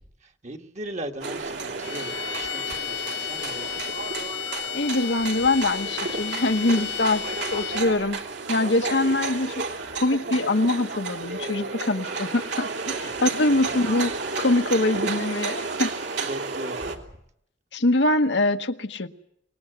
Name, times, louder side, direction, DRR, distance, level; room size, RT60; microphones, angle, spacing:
voice 1, 0.4-3.7 13.0-13.7 16.2-17.0, right 1 dB, 40° right, 1.6 m, -38 dB
sound 1, 1.2-17.0, right 4 dB, 65° right, 3.0 m, -32 dB
sound 2, 1.8-8.0, left 11 dB, 90° left, 4.5 m, -33 dB
voice 2, 4.7-8.2 8.5-9.6 10.0-15.9 17.7-19.1, left 2 dB, 65° left, 1.3 m, -24 dB
26.0 x 20.0 x 8.1 m
head